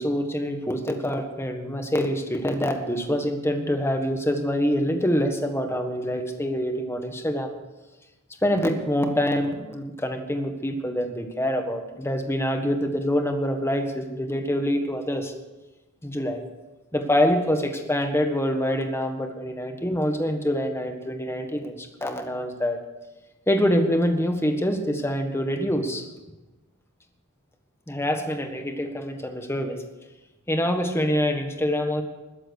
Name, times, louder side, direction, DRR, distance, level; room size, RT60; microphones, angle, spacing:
voice 1, 0.0-7.5 8.4-15.3 16.0-16.4 16.9-22.8 23.5-26.0 27.9-29.8 30.5-32.0, equal, 10° left, 5 dB, 1.5 m, -25 dB
20.5 x 7.9 x 6.6 m, 1.1 s
head